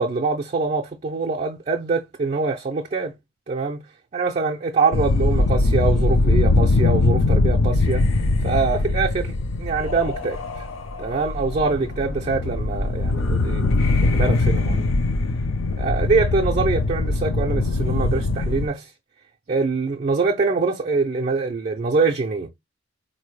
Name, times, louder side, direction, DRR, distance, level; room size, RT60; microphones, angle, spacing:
voice 1, 0.0-3.2 3.5-3.9 4.1-8.0 8.4-10.6 11.0-15.0 15.8-18.9 19.5-22.5, right 4 dB, 35° right, 0.4 m, -24 dB
sound 1, 4.9-18.7, left 2 dB, 80° left, 0.6 m, -21 dB
4.1 x 2.6 x 3.1 m
head